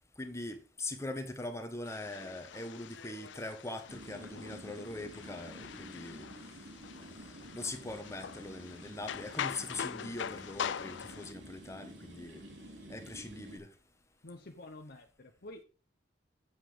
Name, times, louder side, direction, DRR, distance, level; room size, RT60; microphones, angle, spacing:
voice 1, 0.2-6.2 7.0-7.1 7.5-12.4 12.9-13.7, left 2 dB, 15° left, 1.1 m, -42 dB
sound 1, 1.9-11.3, left 8 dB, 70° left, 0.4 m, -43 dB
sound 2, 3.9-13.6, right 1 dB, 85° right, 2.6 m, -50 dB
voice 2, 14.2-15.6, left 2 dB, 55° left, 1.0 m, -49 dB
8.4 x 7.7 x 5.0 m
head